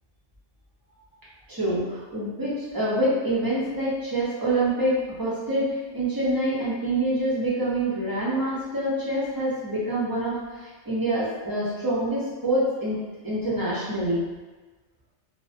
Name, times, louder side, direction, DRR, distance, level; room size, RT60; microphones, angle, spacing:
voice 1, 1.5-14.3, right 1 dB, 30° right, -8 dB, 0.4 m, -26 dB
2.5 x 2.0 x 2.5 m, 1.3 s
omnidirectional pair, 1.2 m